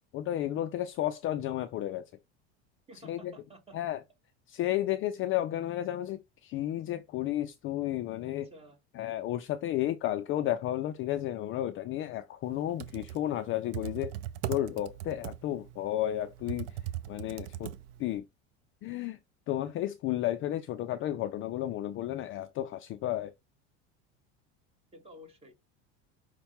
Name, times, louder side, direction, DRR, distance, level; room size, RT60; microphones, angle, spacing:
voice 1, 0.1-2.1 3.1-3.3 3.7-4.0 4.5-8.5 9.0-14.1 14.5-16.8 17.1-17.7 18.0-18.3 18.8-19.2 19.5-23.3, left 13 dB, 40° left, 0.4 m, -32 dB
voice 2, 2.9-3.8 8.2-8.8 24.9-25.5, equal, 15° right, 1.4 m, -52 dB
Computer keyboard, 12.6-18.2, right 12 dB, 70° right, 0.5 m, -39 dB
5.5 x 2.2 x 4.1 m
supercardioid pair, 110°, 33 cm